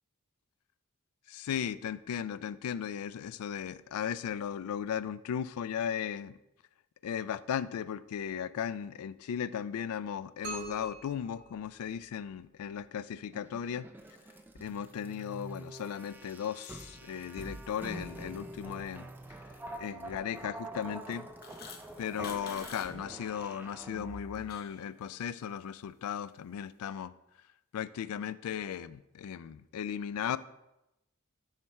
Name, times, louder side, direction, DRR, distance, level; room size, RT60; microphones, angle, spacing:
voice 1, 1.3-6.4 7.0-13.9 14.5-19.1 19.8-21.3 22.0-27.1 27.7-30.4, left 8 dB, 80° left, 17 dB, 0.3 m, -36 dB
sound 1, 10.4-12.4, right 2 dB, 35° right, 2.0 m, -44 dB
sound 2, 13.3-24.6, right 1 dB, 10° right, 0.3 m, -46 dB
sound 3, 21.2-22.9 23.1-23.5 23.9-24.8, left 5 dB, 45° left, 0.7 m, -47 dB
7.2 x 3.2 x 5.6 m, 0.89 s
head